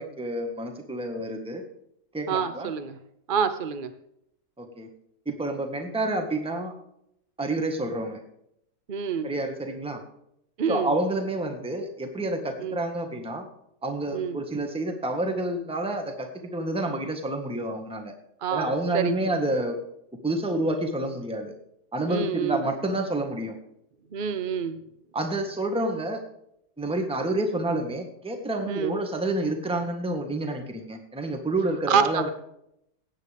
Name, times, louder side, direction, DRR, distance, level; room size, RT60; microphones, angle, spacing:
voice 1, 0.0-1.6 2.1-2.7 4.6-4.9 5.2-6.7 7.4-8.2 9.2-10.0 10.7-13.5 13.8-18.1 18.5-19.8 20.2-21.6 21.9-23.6 25.1-26.2 26.8-32.3, right 1 dB, 5° right, 4 dB, 1.5 m, -29 dB
voice 2, 2.3-3.0 3.3-3.9 8.9-9.3 10.6-10.9 12.6-12.8 14.1-14.4 18.4-19.2 22.1-22.6 24.1-24.8 28.7-29.0 31.9-32.3, right 6 dB, 60° right, 10 dB, 0.5 m, -27 dB
17.5 x 9.1 x 3.5 m, 0.75 s
omnidirectional pair, 2.0 m